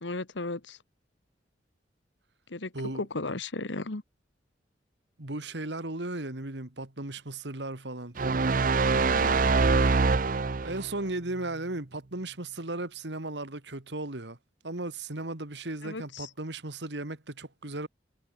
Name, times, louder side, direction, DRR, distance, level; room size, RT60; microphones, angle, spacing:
voice 1, 0.0-0.8 2.5-4.0 9.1-9.4 15.8-16.3, left 2 dB, 85° left, 1.5 m, -35 dB
voice 2, 5.2-8.2 10.6-14.4 14.6-17.9, right 2 dB, 75° right, 2.2 m, -36 dB
sound 1, 8.2-10.9, right 4 dB, 50° right, 0.6 m, -24 dB
head